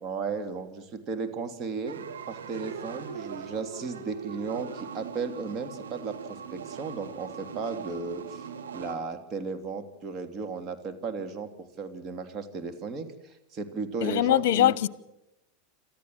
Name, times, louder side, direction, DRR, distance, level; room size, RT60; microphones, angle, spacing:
voice 1, 0.0-8.4 8.7-14.8, right 4 dB, 40° right, 3.1 m, -35 dB
sound 1, 1.9-8.9, right 6 dB, 85° right, 2.7 m, -40 dB
voice 2, 14.0-14.9, left 12 dB, 65° left, 0.8 m, -22 dB
28.0 x 14.0 x 9.0 m
hypercardioid pair, 100°, 0 cm